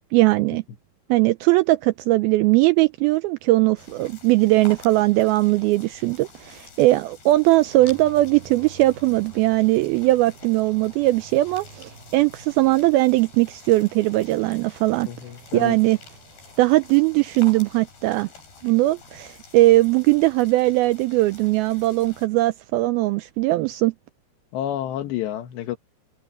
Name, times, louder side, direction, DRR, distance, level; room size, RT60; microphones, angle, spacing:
voice 1, 0.1-0.6 1.1-15.1 15.5-16.0 16.6-18.3 18.6-23.9, right 18 dB, 85° right, 2.2 m, -19 dB
sound 1, 3.8-22.3, left 4 dB, 70° left, 9.0 m, -48 dB
sound 2, 7.7-17.6, right 5 dB, 60° right, 4.4 m, -49 dB
voice 2, 15.1-15.8 24.5-25.8, left 11 dB, 90° left, 3.7 m, -29 dB
omnidirectional pair, 4.8 m